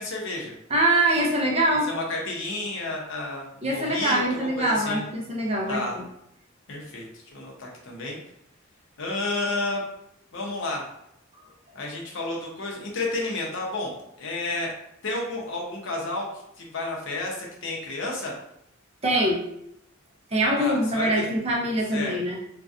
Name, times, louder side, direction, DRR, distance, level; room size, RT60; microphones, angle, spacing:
voice 1, 0.0-0.5 1.8-5.0 5.7-6.0 6.7-7.0 7.3-8.2 9.0-9.8 10.3-10.8 11.7-13.9 14.2-14.7 15.0-16.3 16.6-18.3 20.6-21.3 21.9-22.2, left 2 dB, 65° left, -1 dB, 0.6 m, -31 dB
voice 2, 0.7-1.9 3.6-6.0 19.0-19.4 20.3-22.4, right 1 dB, 30° right, -2 dB, 0.5 m, -23 dB
2.6 x 2.2 x 2.3 m, 0.78 s
head